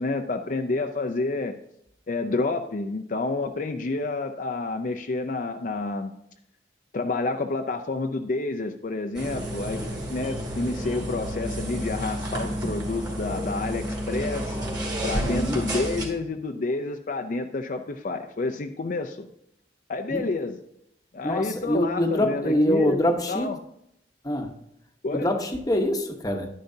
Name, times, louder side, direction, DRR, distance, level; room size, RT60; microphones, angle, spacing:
voice 1, 0.0-1.6 2.1-6.1 6.9-9.8 10.1-14.6 15.0-19.3 19.9-20.6 21.1-23.6 25.0-25.3, left 3 dB, 45° left, 5 dB, 0.5 m, -29 dB
sound 1, 9.1-16.0, equal, 25° right, 2.4 m, -30 dB
voice 2, 15.2-15.6 20.1-20.2 21.2-23.5 24.2-24.5 25.1-26.5, left 1 dB, 20° left, 4 dB, 1.0 m, -25 dB
11.0 x 10.5 x 2.7 m, 0.77 s
head